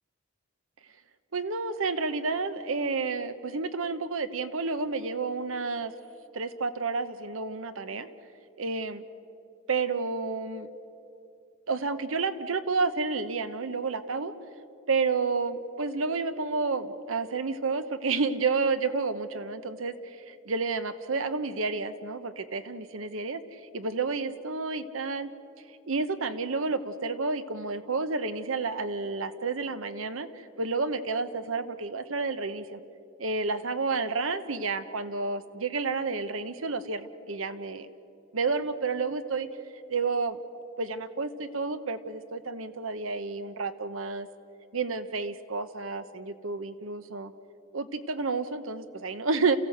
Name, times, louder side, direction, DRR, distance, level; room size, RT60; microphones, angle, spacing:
voice 1, 1.3-5.9 6.3-8.1 8.6-9.0 9.7-10.7 11.7-14.3 14.9-25.3 25.9-30.3 30.6-32.8 33.2-37.9 38.3-39.5 39.9-40.4 40.8-44.3 44.7-47.3 47.7-49.6, right 4 dB, 85° right, 12 dB, 1.0 m, -30 dB
28.0 x 15.5 x 7.9 m, 2.9 s
head